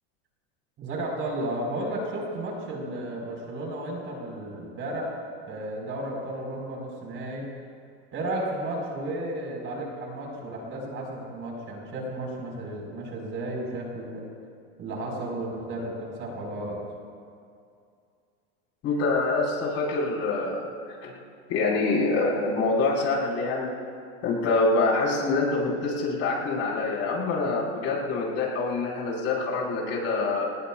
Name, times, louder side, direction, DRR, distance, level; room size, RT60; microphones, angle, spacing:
voice 1, 0.8-5.2 5.5-7.4 8.1-14.2 14.8-16.8, right 1 dB, 35° right, -1 dB, 5.0 m, -33 dB
voice 2, 18.8-20.7 21.0-21.1 21.5-23.7 24.2-30.5, left 3 dB, 45° left, -3 dB, 5.2 m, -25 dB
27.5 x 20.0 x 2.5 m, 2.4 s
supercardioid pair, 130°, 34 cm